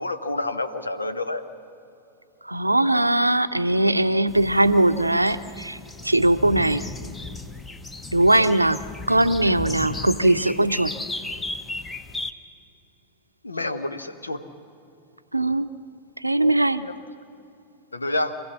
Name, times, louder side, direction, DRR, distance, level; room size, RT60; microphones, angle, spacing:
voice 1, 0.0-1.4 13.4-14.4 16.8-16.9 17.9-18.4, left 2 dB, 80° left, 10 dB, 1.1 m, -28 dB
voice 2, 2.4-5.8 6.0-6.8 8.1-8.8 9.1-10.9 15.3-15.7 16.2-16.8, right 1 dB, 85° right, 11 dB, 0.6 m, -20 dB
sound 1, 4.3-12.3, left 3 dB, 10° left, 0.9 m, -36 dB
25.5 x 16.0 x 7.2 m, 2.8 s
figure-of-eight pair, 90°, 0 cm